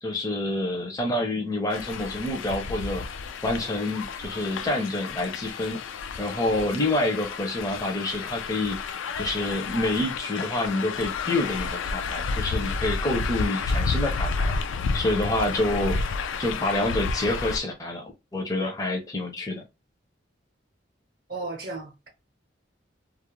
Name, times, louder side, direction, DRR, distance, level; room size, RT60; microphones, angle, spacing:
voice 1, 0.0-3.0 3.4-5.8 6.2-8.8 9.2-14.5 14.9-16.0 16.4-18.0 18.3-19.6, left 1 dB, 20° left, 0.5 m, -27 dB
sound 1, 1.7-17.6, left 4 dB, 75° left, 0.3 m, -31 dB
voice 2, 21.3-22.1, right 3 dB, 50° right, 0.6 m, -34 dB
2.4 x 2.0 x 2.9 m
head